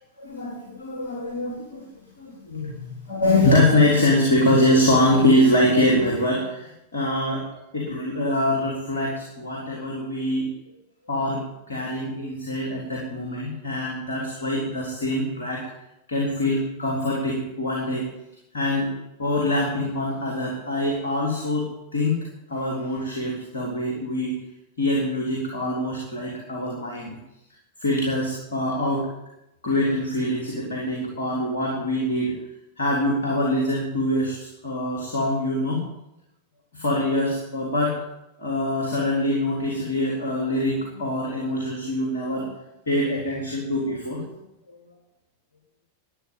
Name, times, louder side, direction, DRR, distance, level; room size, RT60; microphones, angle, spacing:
voice 1, 0.2-1.8 2.2-7.5 7.7-10.5 11.1-15.7 16.1-18.1 18.5-18.9 19.2-22.2 22.5-24.4 24.8-27.2 27.8-29.1 29.6-32.3 32.8-35.9 36.7-38.0 38.4-42.5 42.9-44.2, left 1 dB, 70° left, -2 dB, 3.8 m, -24 dB
13.0 x 9.4 x 9.4 m, 0.88 s
figure-of-eight pair, 90°, 0 cm